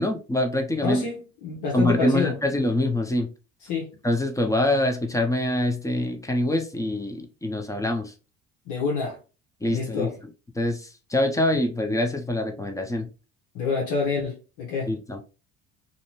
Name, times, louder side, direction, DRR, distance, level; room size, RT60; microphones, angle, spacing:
voice 1, 0.0-1.0 1.7-3.3 4.0-8.1 9.6-10.1 10.5-13.1 14.9-15.2, left 1 dB, 10° left, 0.6 m, -25 dB
voice 2, 0.8-2.3 3.7-4.0 8.7-9.2 9.7-10.1 13.5-14.9, left 5 dB, 75° left, 0.9 m, -27 dB
2.6 x 2.1 x 2.9 m
supercardioid pair, 75°, 33 cm